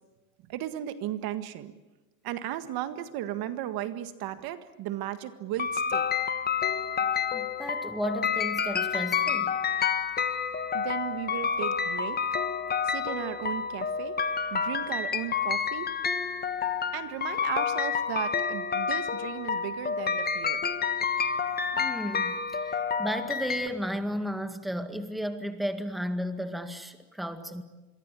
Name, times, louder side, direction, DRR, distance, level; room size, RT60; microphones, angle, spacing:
voice 1, 0.5-1.7 2.2-6.1 10.7-12.4 12.8-14.2 14.5-15.9 16.9-20.6, right 12 dB, 55° right, 10 dB, 1.8 m, -35 dB
sound 1, 5.6-23.7, left 6 dB, 20° left, 1.4 m, -29 dB
voice 2, 7.0-9.6 21.7-27.6, equal, ahead, 7 dB, 1.9 m, -34 dB
27.0 x 23.0 x 8.4 m, 1.1 s
supercardioid pair, 125°, 43 cm